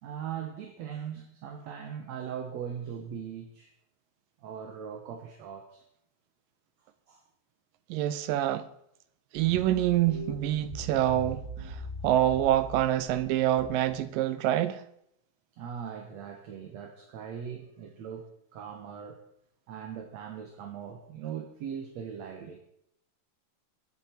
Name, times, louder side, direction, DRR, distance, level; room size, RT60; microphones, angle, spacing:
voice 1, 0.0-3.7 4.4-5.8 7.1-7.2 15.6-19.2 19.7-22.6, right 8 dB, 65° right, 2.0 m, -40 dB
voice 2, 7.9-8.7 9.3-14.8, right 13 dB, 80° right, 2.2 m, -26 dB
sound 1, 9.3-14.0, equal, 25° right, 5.3 m, -41 dB
22.5 x 8.5 x 4.4 m
omnidirectional pair, 4.1 m